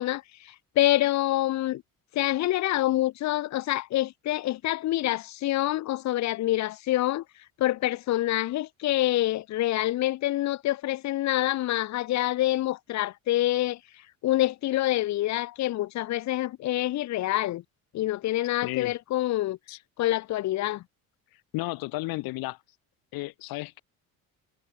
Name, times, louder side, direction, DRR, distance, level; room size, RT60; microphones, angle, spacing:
voice 1, 0.0-1.8 2.1-7.2 7.6-13.8 14.2-17.6 17.9-19.6 20.0-20.8, left 15 dB, 50° left, 1.8 m, -26 dB
voice 2, 18.6-18.9 19.7-19.8 21.5-22.6 23.1-23.8, left 21 dB, 80° left, 1.6 m, -33 dB
cardioid pair, 175°, 36 cm